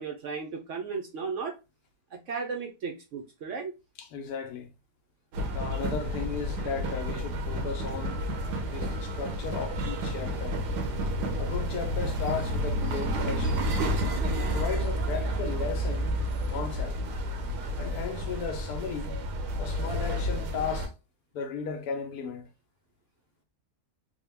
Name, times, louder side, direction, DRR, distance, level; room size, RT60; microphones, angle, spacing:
voice 1, 0.0-1.6 2.1-3.7, right 5 dB, 65° right, 0.8 m, -35 dB
voice 2, 4.0-4.7 5.5-8.2 8.7-10.6 11.4-13.7 14.5-16.1 16.5-17.0 17.8-19.1 19.6-20.9 21.3-22.5, left 5 dB, 75° left, 1.1 m, -35 dB
sound 1, 5.3-20.9, equal, 85° right, 1.3 m, -30 dB
3.6 x 2.2 x 3.3 m
omnidirectional pair, 1.7 m